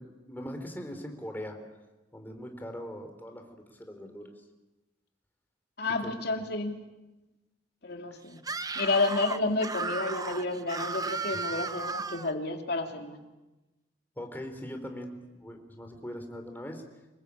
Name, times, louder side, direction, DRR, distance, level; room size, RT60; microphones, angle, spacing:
voice 1, 0.0-1.6 2.1-4.3 6.0-6.2 14.2-16.8, equal, 10° left, 4 dB, 3.9 m, -41 dB
voice 2, 5.8-6.8 7.8-8.4 8.7-13.2, left 3 dB, 60° left, 3 dB, 3.0 m, -30 dB
Screaming, 8.4-12.3, right 4 dB, 20° right, 0.9 m, -35 dB
26.5 x 21.5 x 8.6 m, 1.1 s
head